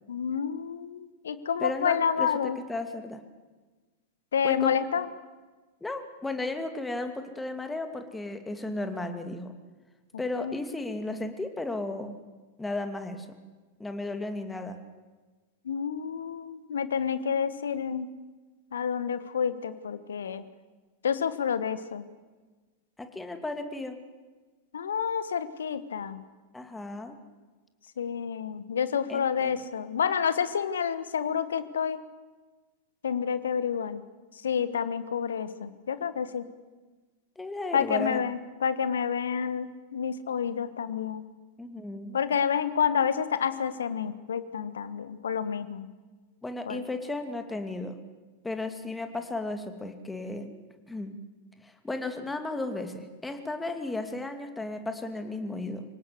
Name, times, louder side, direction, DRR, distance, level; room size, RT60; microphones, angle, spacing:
voice 1, 0.1-2.6 4.3-5.0 10.3-10.6 15.6-18.1 18.7-20.4 21.0-22.1 24.7-26.2 28.0-32.0 33.0-34.0 34.4-36.4 37.7-41.2 42.1-45.9 46.7-46.8, left 7 dB, 65° left, 13 dB, 1.4 m, -29 dB
voice 2, 1.6-2.3 2.7-3.2 4.4-4.7 5.8-9.5 10.2-12.2 12.6-13.3 13.8-14.8 23.0-24.0 26.5-27.2 29.1-29.6 37.4-38.2 41.6-42.2 46.4-47.9 48.4-50.5 50.9-51.1 51.6-55.8, left 2 dB, 10° left, 7 dB, 2.5 m, -34 dB
26.5 x 18.0 x 8.2 m, 1.3 s
figure-of-eight pair, 90°, 0 cm